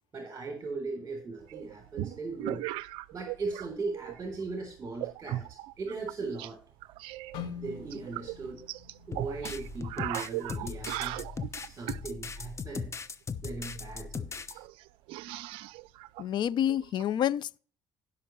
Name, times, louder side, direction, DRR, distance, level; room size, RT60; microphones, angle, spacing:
voice 1, 0.1-2.7 3.1-6.6 7.5-8.6 9.1-11.2 11.6-13.0 13.4-14.6, right 3 dB, 30° right, 3.6 m, -38 dB
sound 1, 1.5-3.7 3.9-4.4 5.0-6.5 6.8-12.1 13.8-13.9 14.0-14.1 14.5-17.0, right 16 dB, 80° right, 0.4 m, -38 dB
sound 2, 7.3-11.4 11.7-12.0 12.6-13.0, left 8 dB, 80° left, 2.3 m, -46 dB
sound 3, 9.1-14.5, left 5 dB, 30° left, 0.9 m, -38 dB
voice 2, 16.2-17.6, left 10 dB, 60° left, 0.5 m, -28 dB
16.0 x 5.8 x 3.1 m
supercardioid pair, 80°, 9 cm